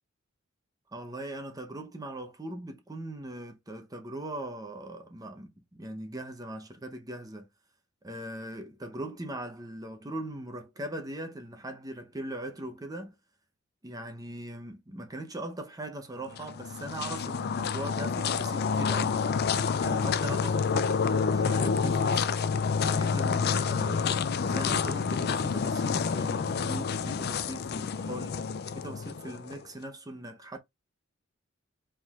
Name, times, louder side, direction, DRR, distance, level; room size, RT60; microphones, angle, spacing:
voice 1, 0.9-7.5 8.0-13.1 13.8-19.3 19.8-22.3 22.9-28.4 28.7-30.6, right 1 dB, 20° right, 0.7 m, -40 dB
sound 1, 16.3-29.6, left 5 dB, 50° left, 0.4 m, -28 dB
5.1 x 3.6 x 2.4 m
head